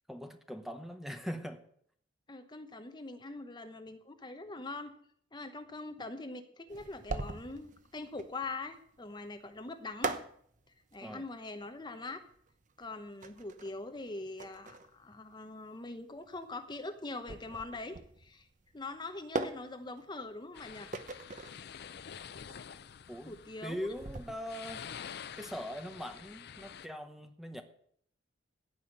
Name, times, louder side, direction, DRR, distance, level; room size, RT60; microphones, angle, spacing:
voice 1, 0.1-1.6 11.0-11.2 23.1-23.4 23.6-27.6, equal, ahead, 6 dB, 0.9 m, -41 dB
voice 2, 2.3-4.9 5.3-10.2 10.9-12.2 12.8-18.4 18.7-20.9 23.3-23.9, left 2 dB, 25° left, 8 dB, 1.0 m, -43 dB
sound 1, 6.7-25.0, right 3 dB, 45° right, 0.9 m, -43 dB
sound 2, 20.5-26.9, left 8 dB, 60° left, 0.5 m, -48 dB
15.5 x 5.7 x 7.8 m, 0.64 s
head